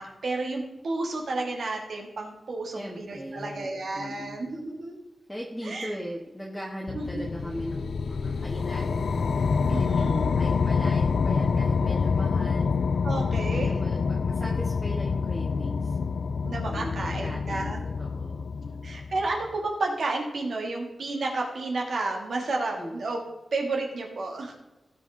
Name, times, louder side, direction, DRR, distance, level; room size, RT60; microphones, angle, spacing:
voice 1, 0.0-5.0 5.6-5.9 6.9-7.2 9.7-10.3 13.0-13.8 16.4-17.8 18.8-23.2 23.5-24.5, right 2 dB, 70° right, 0 dB, 2.4 m, -31 dB
voice 2, 2.7-4.4 5.3-9.3 9.7-12.7 13.5-16.0 16.7-18.8 22.7-23.0, equal, 5° left, -3 dB, 1.4 m, -38 dB
sound 1, 6.9-19.4, left 5 dB, 75° left, 0.4 m, -27 dB
16.5 x 5.7 x 3.8 m, 1.0 s
wide cardioid pair, 130°, 0 cm